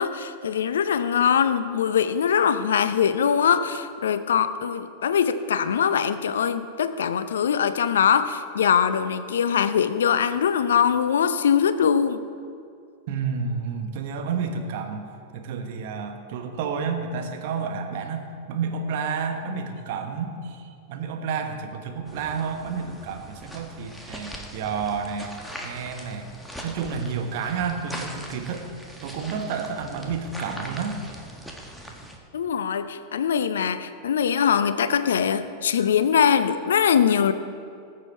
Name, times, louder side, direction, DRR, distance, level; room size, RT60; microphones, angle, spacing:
voice 1, 0.0-12.2 32.3-37.3, left 7 dB, 65° left, 12 dB, 0.6 m, -22 dB
voice 2, 13.1-15.1 15.3-26.3 26.6-28.7 29.0-31.1, right 5 dB, 50° right, 4 dB, 1.4 m, -30 dB
sound 1, 22.0-32.2, equal, ahead, 1.5 m, -41 dB
19.5 x 7.7 x 4.7 m, 2.4 s
figure-of-eight pair, 90°, 0 cm